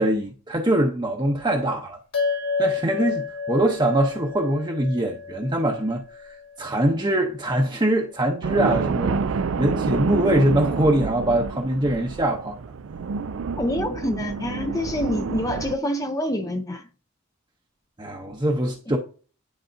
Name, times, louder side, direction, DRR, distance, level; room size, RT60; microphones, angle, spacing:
voice 1, 0.0-2.0 2.6-12.6 18.0-19.0, right 1 dB, 20° right, 0.8 m, -23 dB
sound 1, 2.1-6.8, left 5 dB, 70° left, 2.7 m, -30 dB
sound 2, 8.4-15.8, right 5 dB, 60° right, 0.4 m, -28 dB
voice 2, 13.6-16.9 18.9-19.0, left 1 dB, 15° left, 0.5 m, -26 dB
10.0 x 4.1 x 2.6 m
head